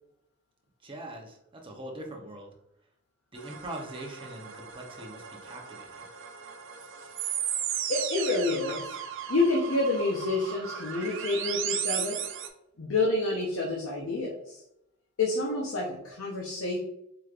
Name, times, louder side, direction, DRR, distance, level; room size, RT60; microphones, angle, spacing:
voice 1, 0.8-2.5 3.3-6.1, right 1 dB, 25° right, 1 dB, 0.8 m, -42 dB
sound 1, 3.4-12.5, right 9 dB, 65° right, 0.5 m, -36 dB
voice 2, 7.9-9.0 9.3-12.2 12.8-14.6 15.2-16.8, left 2 dB, 70° left, -2 dB, 0.7 m, -28 dB
4.9 x 3.1 x 2.4 m, 0.81 s
head